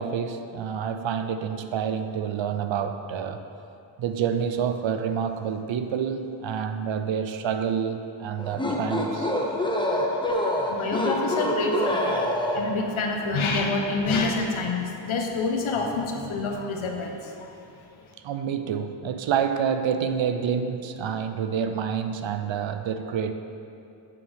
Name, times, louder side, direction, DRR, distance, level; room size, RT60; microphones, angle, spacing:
voice 1, 0.0-3.4 4.0-9.3 18.2-23.3, right 7 dB, 70° right, 9 dB, 0.6 m, -28 dB
sound 1, 8.4-12.9, left 1 dB, 10° left, 0.9 m, -26 dB
voice 2, 10.7-12.2 12.5-17.5, left 3 dB, 75° left, 2 dB, 1.1 m, -27 dB
7.7 x 7.1 x 3.5 m, 2.7 s
cardioid pair, 65°, 48 cm